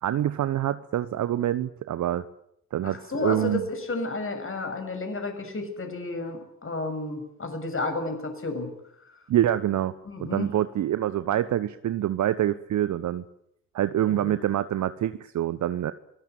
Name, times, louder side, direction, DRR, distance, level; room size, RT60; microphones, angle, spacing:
voice 1, 0.0-2.2 2.7-3.6 9.3-9.9 10.2-13.2 13.7-15.9, right 12 dB, 50° right, 13 dB, 1.0 m, -26 dB
voice 2, 2.8-8.7 10.1-10.5 14.0-14.4, left 3 dB, 35° left, 6 dB, 7.2 m, -32 dB
23.0 x 18.0 x 9.3 m, 0.74 s
figure-of-eight pair, 45°, 37 cm